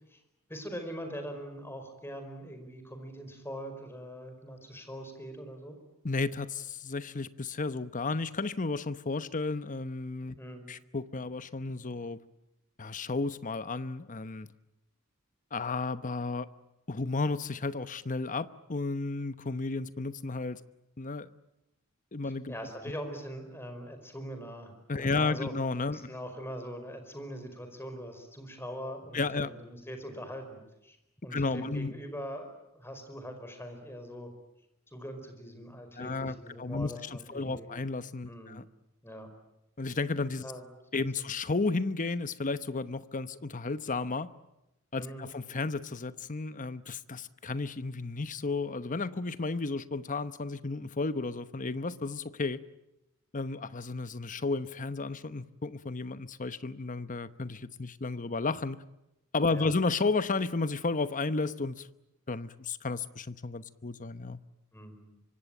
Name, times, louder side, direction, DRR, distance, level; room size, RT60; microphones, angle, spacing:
voice 1, 0.5-5.8 10.4-10.7 22.2-25.5 25.9-31.0 31.2-34.3 34.9-37.7 38.3-38.6 39.0-39.3 40.4-40.6 41.2-41.3 45.0-45.3 59.5-59.7 64.7-65.1, equal, 10° left, 5.0 m, -42 dB
voice 2, 6.0-10.4 10.7-12.2 12.8-14.5 15.5-16.5 16.9-20.6 21.0-21.3 22.1-22.5 24.9-26.1 29.1-29.5 31.3-31.9 36.0-38.6 39.8-40.4 40.9-44.3 44.9-52.6 53.3-58.8 59.3-61.9 62.3-64.4, left 3 dB, 40° left, 1.0 m, -33 dB
25.5 x 24.5 x 9.1 m
head